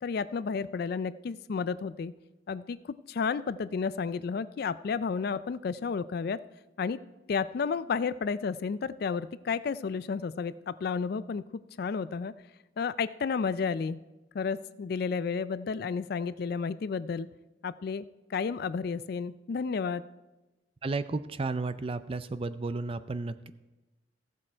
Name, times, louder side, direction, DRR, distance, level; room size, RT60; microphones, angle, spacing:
voice 1, 0.0-2.1 2.5-6.4 6.8-7.0 7.3-12.3 12.8-14.0 14.3-17.3 17.6-18.0 18.3-20.0, left 5 dB, 50° left, 15 dB, 0.3 m, -32 dB
voice 2, 20.8-23.5, right 3 dB, 30° right, 13 dB, 0.4 m, -33 dB
15.5 x 7.6 x 4.5 m, 1.1 s
head